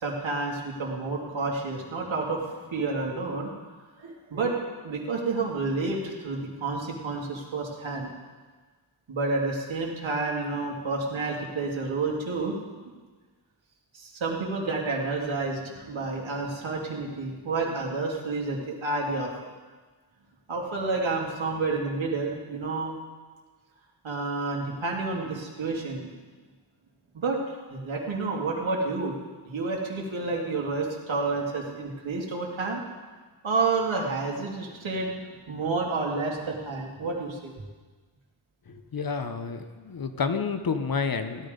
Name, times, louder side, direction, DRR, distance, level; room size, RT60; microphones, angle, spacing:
voice 1, 0.0-3.5 4.0-4.6 4.8-8.1 9.1-12.6 13.9-19.3 20.5-22.9 24.0-26.1 27.1-27.4 27.7-29.1 29.4-32.8 33.4-35.1 35.5-37.5, right 3 dB, 75° right, -1 dB, 2.8 m, -29 dB
voice 2, 38.7-41.5, left 5 dB, 50° left, 9 dB, 0.9 m, -30 dB
16.5 x 11.5 x 5.3 m, 1.4 s
wide cardioid pair, 180°, 46 cm